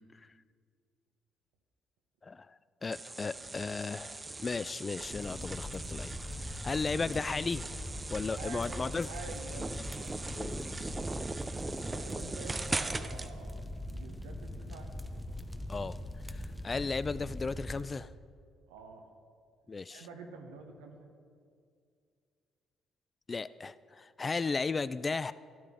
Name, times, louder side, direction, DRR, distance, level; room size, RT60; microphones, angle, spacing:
voice 1, 2.2-2.6 2.8-6.1 6.4-7.7 8.1-9.1 9.8-9.9 10.4-10.9 15.7-16.0 16.3-18.1 19.7-20.1 23.3-25.3, left 4 dB, 35° left, 16 dB, 0.3 m, -35 dB
sound 1, 2.9-13.3, right 2 dB, 25° right, 0.6 m, -40 dB
sound 2, 5.1-17.8, left 1 dB, 5° left, 0.8 m, -42 dB
voice 2, 8.4-10.3 11.9-14.9 18.7-19.1 19.9-21.1, right 4 dB, 80° right, 4 dB, 1.0 m, -48 dB
12.5 x 11.5 x 3.7 m, 2.2 s
hypercardioid pair, 50°, 0 cm